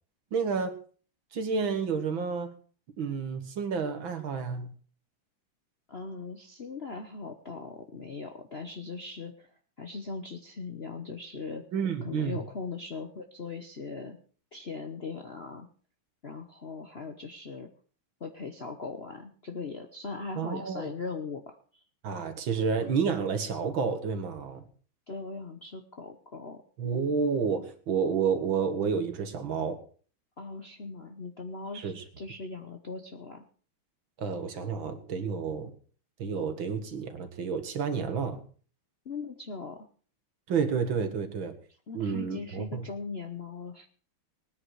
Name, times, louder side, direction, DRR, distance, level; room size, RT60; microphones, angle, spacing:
voice 1, 0.3-0.7 1.3-2.5 3.0-4.7 11.7-12.4 20.4-20.9 22.0-24.7 26.8-29.8 31.7-32.0 34.2-35.7 36.2-38.4 40.5-41.5 41.9-42.9, right 6 dB, 65° right, 7 dB, 2.3 m, -30 dB
voice 2, 5.9-9.5 9.8-11.6 12.0-14.2 14.5-15.7 16.2-17.7 18.2-21.8 25.1-26.6 30.4-33.4 39.0-39.9 41.9-43.9, left 4 dB, 45° left, 4 dB, 0.8 m, -39 dB
20.0 x 9.7 x 4.8 m, 0.42 s
omnidirectional pair, 2.4 m